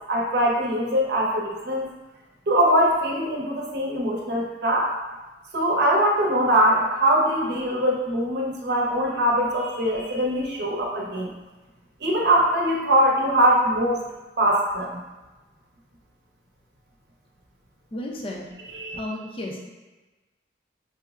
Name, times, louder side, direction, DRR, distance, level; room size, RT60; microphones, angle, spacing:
voice 1, 0.1-1.9 2.5-4.9 5.5-11.3 12.0-14.1 14.4-14.9 18.7-19.0, right 1 dB, 65° right, -2 dB, 0.7 m, -22 dB
voice 2, 17.9-18.5 18.9-19.6, left 1 dB, 30° left, -2 dB, 0.5 m, -33 dB
5.4 x 2.0 x 2.4 m, 1.2 s
head